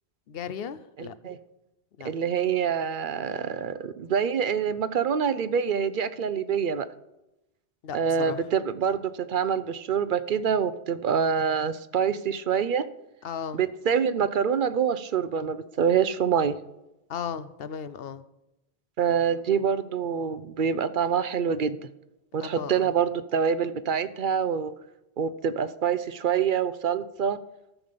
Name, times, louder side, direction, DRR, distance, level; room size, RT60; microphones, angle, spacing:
voice 1, 0.3-1.2 2.0-2.1 7.8-8.4 13.2-13.6 17.1-18.2 22.4-22.9, left 7 dB, 70° left, 14 dB, 0.9 m, -36 dB
voice 2, 1.0-1.4 2.0-6.9 7.9-12.8 13.5-16.6 19.0-21.8 22.3-24.7 25.2-27.4, right 7 dB, 60° right, 14 dB, 0.7 m, -26 dB
13.0 x 7.2 x 5.1 m, 0.91 s
omnidirectional pair, 1.0 m